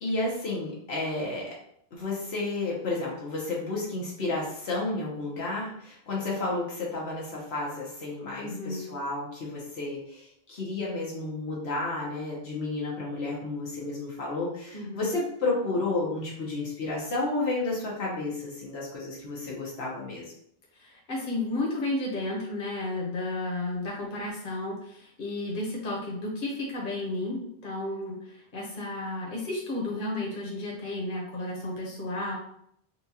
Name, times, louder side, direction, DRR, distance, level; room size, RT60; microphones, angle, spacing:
voice 1, 0.0-1.6 1.9-20.3, left 2 dB, 90° left, -4 dB, 1.2 m, -31 dB
voice 2, 8.4-8.9 14.7-15.1 20.7-32.4, left 2 dB, 60° left, -3 dB, 1.2 m, -33 dB
4.3 x 2.3 x 2.8 m, 0.70 s
omnidirectional pair, 1.0 m